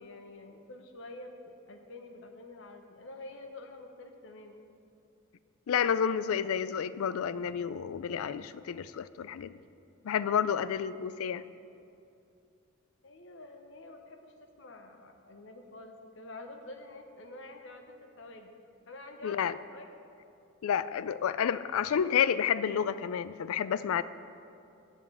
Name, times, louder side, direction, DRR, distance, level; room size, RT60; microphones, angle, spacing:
voice 1, 0.0-4.6 13.0-18.5 18.9-19.4 19.7-19.9, left 2 dB, 60° left, 5 dB, 0.8 m, -48 dB
voice 2, 5.7-9.6 10.0-11.4 19.2-19.5 20.6-24.0, left 8 dB, 85° left, 15 dB, 0.3 m, -30 dB
7.6 x 7.2 x 8.2 m, 2.6 s
head